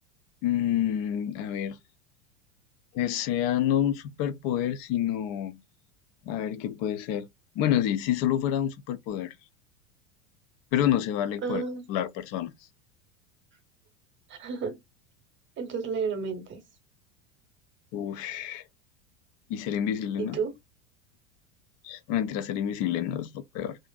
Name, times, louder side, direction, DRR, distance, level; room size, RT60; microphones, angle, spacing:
voice 1, 0.4-1.8 2.9-5.6 6.3-7.3 7.6-9.3 10.7-11.6 11.9-12.5 17.9-18.6 19.5-20.4 21.8-23.8, left 10 dB, 45° left, 0.4 m, -28 dB
voice 2, 11.4-11.8 14.3-14.8 15.6-16.6 20.2-20.5, right 5 dB, 30° right, 0.9 m, -31 dB
2.5 x 2.5 x 2.2 m
hypercardioid pair, 85°, 36 cm